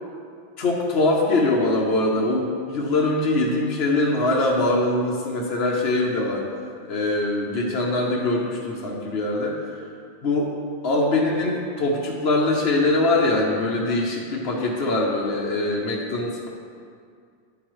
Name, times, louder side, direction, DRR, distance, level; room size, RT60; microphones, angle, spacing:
voice 1, 0.6-6.5 6.9-9.6 10.2-10.5 10.8-16.5, left 2 dB, 60° left, -2 dB, 1.1 m, -22 dB
10.5 x 8.9 x 3.1 m, 2.2 s
omnidirectional pair, 1.2 m